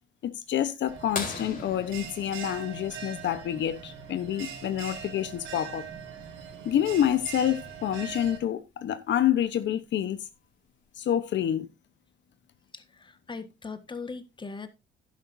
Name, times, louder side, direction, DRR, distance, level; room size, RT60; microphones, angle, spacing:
voice 1, 0.2-5.8 6.6-10.2 11.0-11.7, left 10 dB, 65° left, 0.9 m, -28 dB
Bell, 0.9-8.4, right 7 dB, 80° right, 5.2 m, -42 dB
sound 1, 1.1-3.6 5.5-5.6 7.9-8.0 9.7-9.9 10.7-10.8, left 4 dB, 45° left, 3.8 m, -38 dB
voice 2, 12.7-14.7, left 4 dB, 25° left, 1.5 m, -40 dB
11.5 x 11.0 x 2.6 m
cardioid pair, 90°, 20 cm